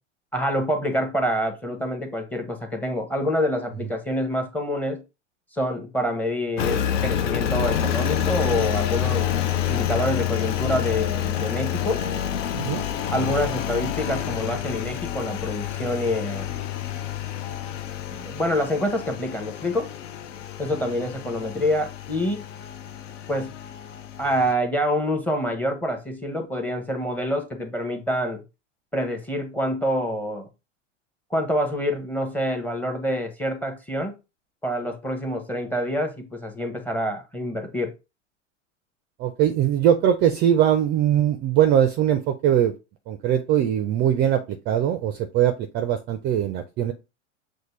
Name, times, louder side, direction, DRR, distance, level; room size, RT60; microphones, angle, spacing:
voice 1, 0.3-5.0 5.5-9.3 9.7-12.0 13.1-16.5 18.1-19.9 20.6-22.4 23.3-23.5 24.2-28.4 28.9-30.5 31.3-34.2 34.6-37.9, equal, 5° left, 0.8 m, -26 dB
Engine, 6.6-24.5, left 10 dB, 70° left, 0.7 m, -28 dB
voice 2, 39.2-42.7 43.1-46.9, right 10 dB, 30° right, 0.4 m, -21 dB
6.4 x 2.1 x 3.1 m
hypercardioid pair, 100°, 37 cm